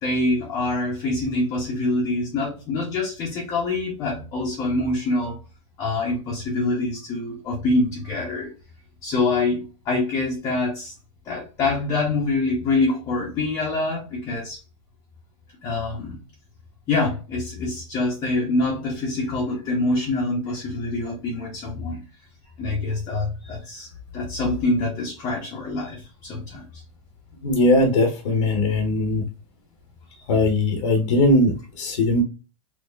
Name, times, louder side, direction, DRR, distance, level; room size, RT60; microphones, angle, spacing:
voice 1, 0.0-5.4 5.8-8.5 9.0-10.9 11.3-14.6 15.6-16.2 16.9-22.0 22.6-23.9 24.1-26.8 30.2-30.3, left 2 dB, 20° left, 0.7 m, -25 dB
voice 2, 27.4-29.2 30.3-32.2, left 1 dB, 75° left, 0.8 m, -20 dB
4.1 x 2.9 x 2.3 m
supercardioid pair, 165°, 17 cm